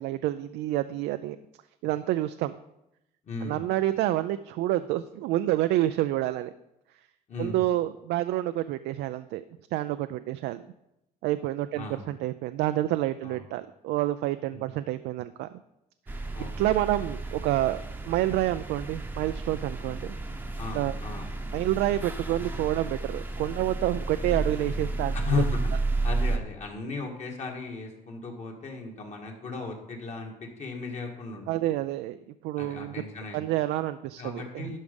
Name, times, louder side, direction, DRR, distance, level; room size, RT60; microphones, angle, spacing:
voice 1, 0.0-1.4 1.8-2.5 3.4-6.5 7.4-9.4 9.7-10.6 11.2-15.5 16.1-16.2 16.6-20.1 20.7-20.9 21.5-25.4 31.5-32.2 32.4-32.9 33.3-34.8, right 14 dB, 85° right, 11 dB, 0.4 m, -28 dB
voice 2, 3.3-3.6 7.3-7.6 11.7-12.0 13.2-13.4 14.5-14.7 16.3-16.5 20.6-21.3 25.1-25.6 26.0-31.7 32.6-33.4 34.2-34.8, left 4 dB, 40° left, 1 dB, 1.9 m, -35 dB
sound 1, 16.1-26.4, right 3 dB, 10° right, 0.8 m, -32 dB
11.5 x 4.8 x 5.3 m, 0.86 s
cardioid pair, 110°, 17 cm